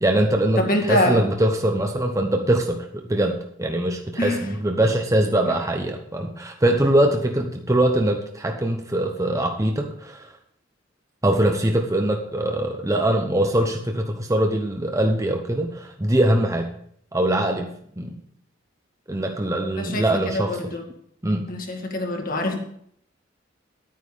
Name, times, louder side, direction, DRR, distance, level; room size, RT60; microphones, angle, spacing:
voice 1, 0.0-10.3 11.2-16.7 17.1-18.2 19.1-20.8 21.2-21.5, right 1 dB, 15° right, 3 dB, 0.9 m, -22 dB
voice 2, 0.6-1.2 4.2-4.4 19.8-20.1 20.3-20.8 21.5-22.6, left 1 dB, 45° left, 2 dB, 2.0 m, -24 dB
10.5 x 9.4 x 4.9 m, 0.67 s
head